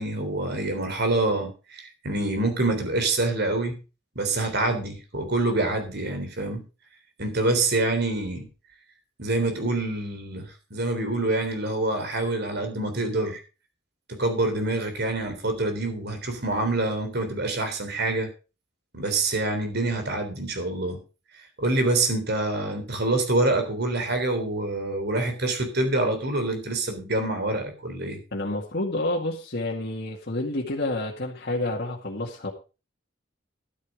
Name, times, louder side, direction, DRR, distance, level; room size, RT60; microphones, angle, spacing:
voice 1, 0.0-3.8 4.2-6.6 7.2-8.5 9.2-13.4 14.1-18.3 18.9-21.0 21.3-28.2, right 2 dB, 55° right, 7 dB, 3.6 m, -26 dB
voice 2, 28.3-32.5, left 2 dB, 55° left, -2 dB, 2.1 m, -29 dB
12.5 x 8.6 x 4.8 m, 0.32 s
head